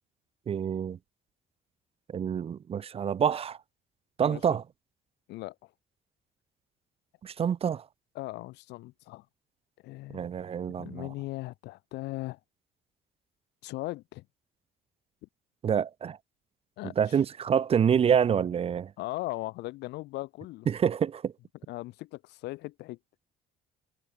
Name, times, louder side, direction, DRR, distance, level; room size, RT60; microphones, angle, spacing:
voice 1, 0.5-1.0 2.1-3.6 4.2-4.6 7.2-7.8 10.1-11.1 15.6-16.2 17.0-18.9 20.7-21.3, right 8 dB, 35° right, 0.6 m, -27 dB
voice 2, 4.2-4.6 5.3-5.6 8.2-9.3 9.8-10.3 10.8-12.4 13.6-14.2 16.8-17.2 19.0-20.7 21.7-23.0, left 19 dB, 85° left, 7.1 m, -38 dB
cardioid pair, 110°, 17 cm